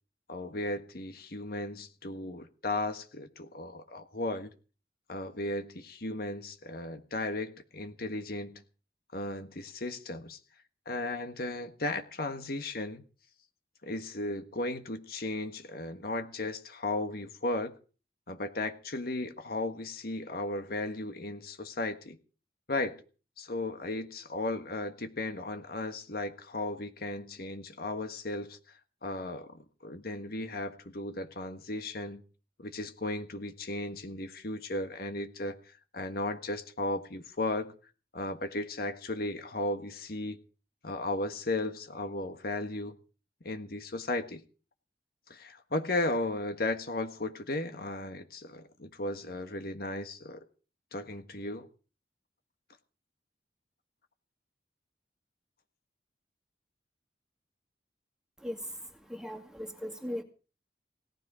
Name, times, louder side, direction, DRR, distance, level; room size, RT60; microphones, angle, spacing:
voice 1, 0.3-4.5 5.1-8.6 9.1-10.4 10.8-13.0 13.8-17.7 18.3-22.2 22.7-23.0 23.4-28.6 29.0-32.2 32.6-37.7 38.1-40.4 40.8-43.0 43.4-44.4 45.3-50.4 50.9-51.7, left 2 dB, 60° left, 7 dB, 1.5 m, -35 dB
voice 2, 58.4-60.2, equal, 5° right, 3 dB, 2.3 m, -39 dB
18.0 x 13.0 x 4.9 m, 0.37 s
head